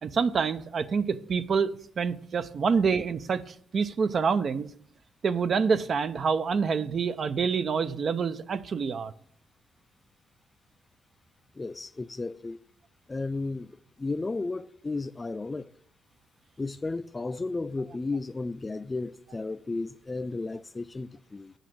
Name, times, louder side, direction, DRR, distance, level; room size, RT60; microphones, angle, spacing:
voice 1, 0.0-4.7 5.2-9.1, right 5 dB, 50° right, 0.6 m, -27 dB
voice 2, 11.6-12.6 13.1-13.7 14.0-15.7 16.6-21.5, left 3 dB, 25° left, 0.4 m, -33 dB
9.0 x 6.4 x 6.1 m
cardioid pair, 90°, 0 cm